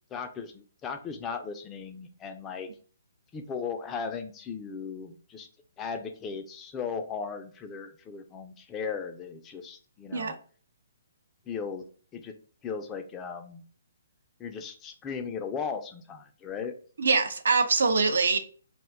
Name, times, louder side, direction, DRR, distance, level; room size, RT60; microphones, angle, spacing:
voice 1, 0.1-2.7 3.3-5.5 5.8-10.4 11.5-11.9 12.1-12.3 12.6-13.6 14.4-16.7, left 6 dB, 20° left, 0.3 m, -37 dB
voice 2, 17.0-18.4, right 4 dB, 75° right, 0.5 m, -23 dB
2.5 x 2.2 x 3.5 m
hypercardioid pair, 150°, 0 cm